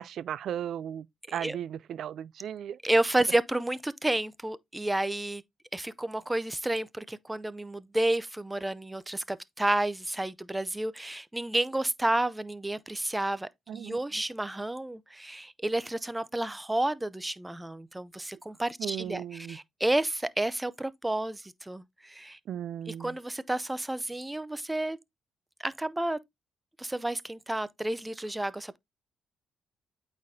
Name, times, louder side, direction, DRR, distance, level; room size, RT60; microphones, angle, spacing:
voice 1, 0.0-2.8 13.7-14.0 18.8-19.6 22.5-23.2, right 10 dB, 70° right, 0.3 m, -36 dB
voice 2, 2.8-5.4 5.7-22.4 22.9-25.0 25.6-26.2 26.8-28.8, right 1 dB, 10° right, 0.5 m, -31 dB
8.5 x 4.1 x 2.7 m
cardioid pair, 90°, 0 cm